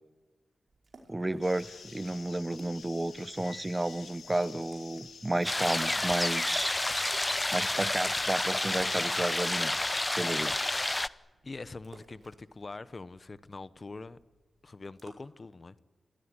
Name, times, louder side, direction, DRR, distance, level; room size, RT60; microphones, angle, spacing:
sound 1, 0.7-15.1, right 3 dB, 60° right, 5.2 m, -61 dB
voice 1, 1.1-6.8 7.5-9.7 10.1-10.5, right 1 dB, 25° right, 1.0 m, -32 dB
sound 2, 1.4-11.0, left 6 dB, 85° left, 1.9 m, -50 dB
sound 3, 5.4-11.1, left 2 dB, 25° left, 0.8 m, -30 dB
voice 2, 11.4-14.2 14.6-15.8, left 3 dB, 45° left, 1.0 m, -43 dB
27.5 x 17.0 x 9.9 m
cardioid pair, 50°, 0 cm